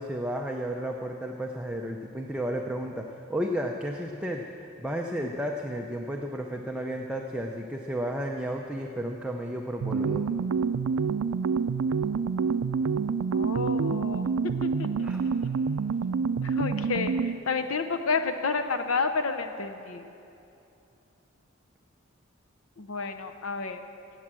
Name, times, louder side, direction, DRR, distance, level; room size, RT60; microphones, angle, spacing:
voice 1, 0.0-10.2 15.0-15.2, equal, 5° right, 0 dB, 0.6 m, -33 dB
sound 1, 9.8-17.5, right 5 dB, 85° right, 0.4 m, -27 dB
voice 2, 13.3-15.3 16.4-20.0 22.8-23.8, left 4 dB, 85° left, 7 dB, 0.7 m, -31 dB
18.0 x 7.8 x 7.5 m, 2.8 s
head